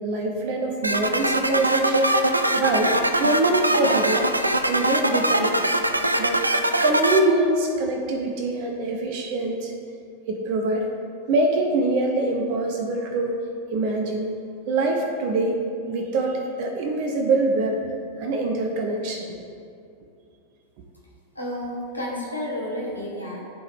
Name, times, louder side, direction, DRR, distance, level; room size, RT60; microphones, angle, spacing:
voice 1, 0.0-4.3 4.6-5.6 6.2-6.4 6.8-9.7 10.3-10.9 11.3-13.4 13.7-14.3 14.7-15.6 15.9-17.9 18.2-19.4, right 2 dB, 45° right, 2 dB, 0.6 m, -24 dB
sound 1, 0.8-7.2, right 1 dB, 85° right, 0.3 m, -22 dB
voice 2, 21.3-23.4, left 1 dB, 85° left, -4 dB, 1.4 m, -31 dB
11.0 x 3.8 x 3.4 m, 2.4 s
figure-of-eight pair, 90°, 0 cm